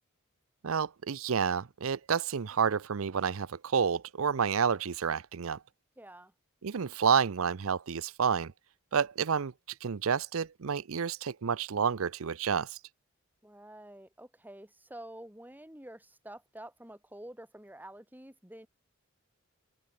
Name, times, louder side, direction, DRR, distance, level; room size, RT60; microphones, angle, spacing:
voice 1, 0.6-5.6 6.6-8.5 8.9-9.5 9.8-12.8, right 6 dB, 75° right, 0.6 m, -29 dB
voice 2, 6.0-6.3 13.4-18.7, right 1 dB, 10° right, 3.5 m, -48 dB
open air
head